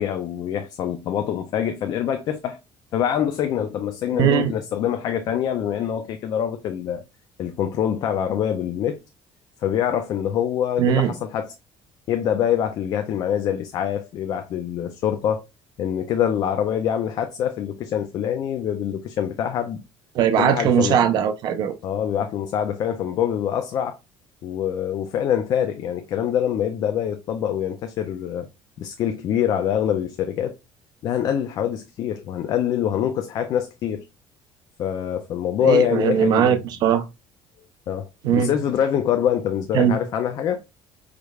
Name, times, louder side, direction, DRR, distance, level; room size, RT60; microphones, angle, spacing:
voice 1, 0.0-2.6 2.9-7.0 7.4-9.0 9.6-11.5 12.1-15.4 15.8-19.8 20.4-21.0 21.8-24.0 24.4-28.5 28.8-30.6 31.0-34.0 34.8-36.6 37.9-40.6, left 9 dB, 40° left, 0.4 m, -25 dB
voice 2, 4.1-4.5 10.8-11.1 20.1-21.7 35.6-37.0 38.2-38.5 39.7-40.0, right 9 dB, 45° right, 0.6 m, -20 dB
4.9 x 3.1 x 2.3 m
cardioid pair, 180°, 10 cm